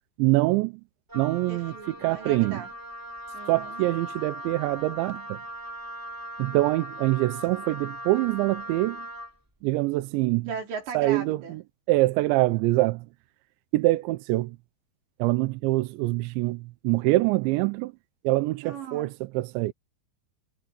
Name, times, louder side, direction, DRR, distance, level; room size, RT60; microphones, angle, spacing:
voice 1, 0.2-0.7 1.1-2.6 3.5-5.4 6.4-9.1 9.6-10.5 10.9-11.6 11.9-13.1 13.7-14.6 15.2-17.9 18.2-19.7, right 19 dB, 80° right, 2.8 m, -25 dB
Wind instrument woodwind instrument, 1.1-9.4, right 1 dB, 5° right, 3.0 m, -39 dB
voice 2, 1.5-2.7 3.3-3.8 10.5-11.6 18.6-19.1, right 6 dB, 65° right, 6.7 m, -37 dB
omnidirectional pair, 5.6 m